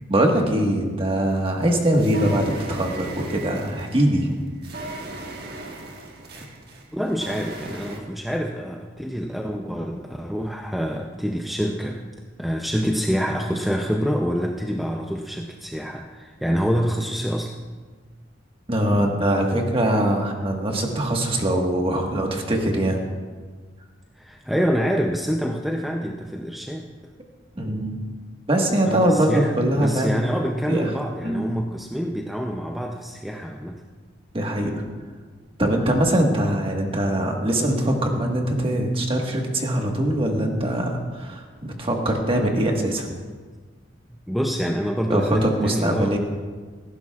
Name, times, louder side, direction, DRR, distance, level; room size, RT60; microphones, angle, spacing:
voice 1, 0.1-4.5 18.7-23.0 27.6-28.1 28.5-30.2 30.7-31.5 34.3-34.7 35.6-43.1 45.1-46.2, right 1 dB, 30° right, 1 dB, 1.5 m, -22 dB
sound 1, 1.3-8.0, right 2 dB, 55° right, 1.5 m, -37 dB
voice 2, 6.9-12.0 12.4-17.6 24.2-26.9 28.8-33.8 44.1-46.2, equal, ahead, 1 dB, 0.5 m, -26 dB
17.5 x 15.0 x 2.4 m, 1.5 s
head